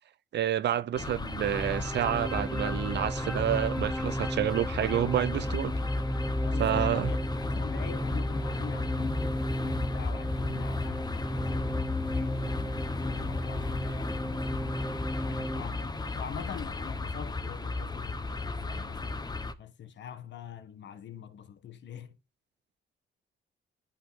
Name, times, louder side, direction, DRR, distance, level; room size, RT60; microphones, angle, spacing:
voice 1, 0.3-5.7 6.6-7.1, right 11 dB, 60° right, 0.7 m, -29 dB
sound 1, 0.9-19.5, left 3 dB, 20° left, 1.1 m, -34 dB
sound 2, 1.3-15.6, equal, ahead, 0.8 m, -35 dB
voice 2, 6.4-14.7 15.1-19.2 19.6-22.2, left 8 dB, 65° left, 1.6 m, -44 dB
11.0 x 5.9 x 3.9 m
cardioid pair, 90°, 20 cm